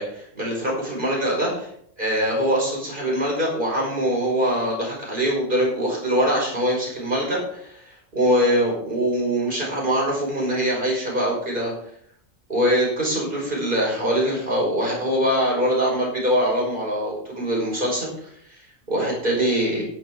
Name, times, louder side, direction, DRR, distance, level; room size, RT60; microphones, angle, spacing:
voice 1, 0.0-1.7 2.0-11.7 12.5-18.1 18.5-18.6 18.9-19.9, equal, 40° right, -3 dB, 5.6 m, -23 dB
11.5 x 10.0 x 4.7 m, 0.65 s
omnidirectional pair, 1.3 m